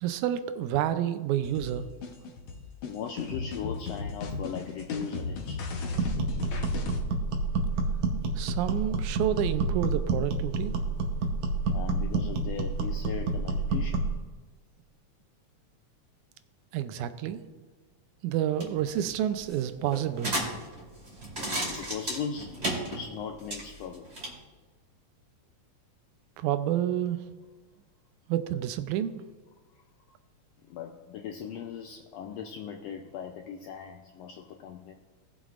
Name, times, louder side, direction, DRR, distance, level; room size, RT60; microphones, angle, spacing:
voice 1, 0.0-1.9 8.4-10.8 16.7-17.4 18.2-20.4 26.4-27.3 28.3-29.2, right 11 dB, 80° right, 11 dB, 2.0 m, -29 dB
sound 1, 1.4-7.0, left 4 dB, 60° left, 1.7 m, -35 dB
voice 2, 2.8-5.7 11.7-14.1 21.4-22.6 22.9-24.1 30.7-34.9, left 7 dB, 80° left, 4 dB, 1.5 m, -38 dB
sound 2, 5.9-14.2, right 3 dB, 65° right, 1.9 m, -29 dB
sound 3, 18.4-24.3, right 1 dB, 25° right, 2.1 m, -36 dB
18.5 x 7.2 x 2.5 m, 1.3 s
omnidirectional pair, 3.5 m